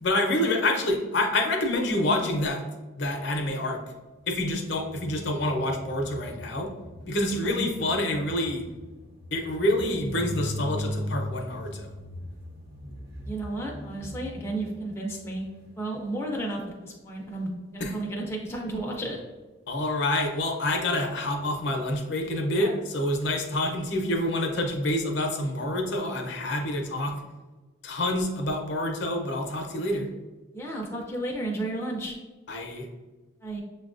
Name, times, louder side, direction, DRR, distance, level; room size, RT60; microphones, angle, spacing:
voice 1, 0.0-2.7 3.0-3.8 4.3-6.7 7.0-8.6 9.3-11.9 17.8-17.9 19.7-27.1 27.8-30.1 32.5-32.9, left 1 dB, 60° left, 2 dB, 0.6 m, -27 dB
sound 1, 4.6-16.1 22.2-22.3 22.6-22.8, left 1 dB, 50° right, 0.8 m, -39 dB
voice 2, 13.2-15.5 15.8-19.2 30.5-32.2 33.4-33.6, right 1 dB, 10° left, -2 dB, 0.4 m, -33 dB
6.7 x 2.2 x 2.4 m, 1.2 s
head